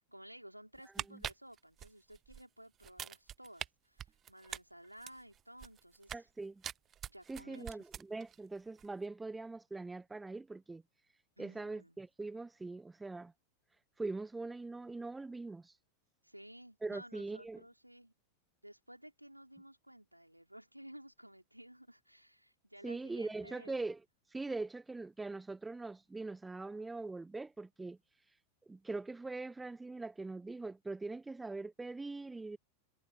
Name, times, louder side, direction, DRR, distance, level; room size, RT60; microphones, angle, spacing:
voice 1, 0.0-6.3 7.1-7.8 11.4-12.0 16.2-18.1 18.6-23.8 24.5-24.6, right 1 dB, 90° right, 3.9 m, -55 dB
sound 1, 0.7-2.4 2.8-3.7 4.0-6.3 6.6-8.4 8.7-8.9, right 10 dB, 25° right, 0.3 m, -44 dB
voice 2, 6.1-6.6 7.3-10.8 11.4-13.3 14.0-15.7 16.8-17.6 22.8-24.0 24.3-28.0 28.7-32.6, right 3 dB, 10° right, 1.0 m, -42 dB
figure-of-eight pair, 90°, 0 cm